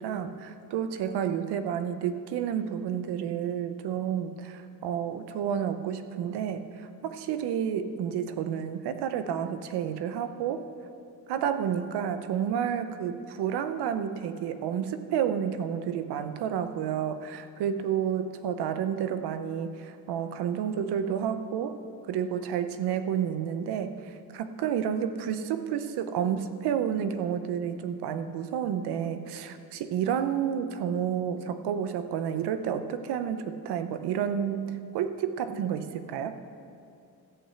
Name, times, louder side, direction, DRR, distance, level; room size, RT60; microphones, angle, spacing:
voice 1, 0.0-10.6 11.3-21.8 22.1-36.3, right 8 dB, 80° right, 9 dB, 0.8 m, -30 dB
14.5 x 5.7 x 7.9 m, 2.4 s
cardioid pair, 160°, 39 cm